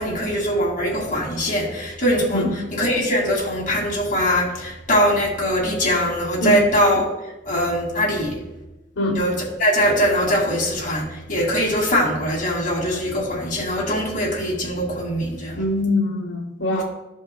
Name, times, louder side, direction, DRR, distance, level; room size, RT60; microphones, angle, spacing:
voice 1, 0.0-2.5 2.7-7.0 7.5-8.4 9.1-15.6 16.7-16.8, equal, 45° left, -3 dB, 2.2 m, -22 dB
voice 2, 15.6-16.8, left 2 dB, 85° left, -1 dB, 0.9 m, -22 dB
12.5 x 5.3 x 2.2 m, 0.95 s
head